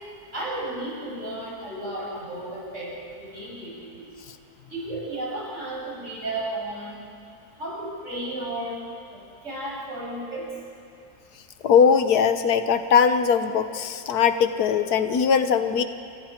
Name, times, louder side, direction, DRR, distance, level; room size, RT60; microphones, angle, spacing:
voice 1, 0.3-4.1 4.7-7.0 7.6-8.8 9.1-10.5, right 1 dB, 50° right, -6 dB, 8.0 m, -33 dB
voice 2, 11.6-15.8, left 6 dB, 85° left, 9 dB, 1.5 m, -20 dB
28.5 x 25.5 x 4.5 m, 2.5 s
omnidirectional pair, 1.6 m